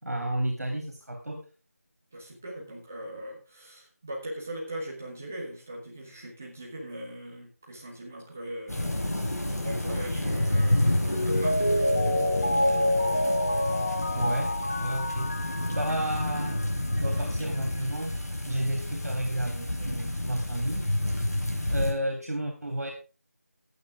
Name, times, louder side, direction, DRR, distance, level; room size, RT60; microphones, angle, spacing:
voice 1, 0.0-1.4 14.1-14.5 14.8-15.3 15.7-16.6 16.9-18.1 18.5-20.8 21.7-22.9, right 1 dB, 75° right, 3 dB, 3.3 m, -32 dB
voice 2, 2.1-8.9 9.3-12.0, right 1 dB, 10° right, -3 dB, 1.1 m, -40 dB
sound 1, 8.7-21.9, left 1 dB, 80° left, 4.7 m, -29 dB
Mallet percussion, 11.1-16.6 17.0-17.1, left 1 dB, 25° left, 1.2 m, -27 dB
14.5 x 8.8 x 3.6 m, 0.33 s
figure-of-eight pair, 180°, 9 cm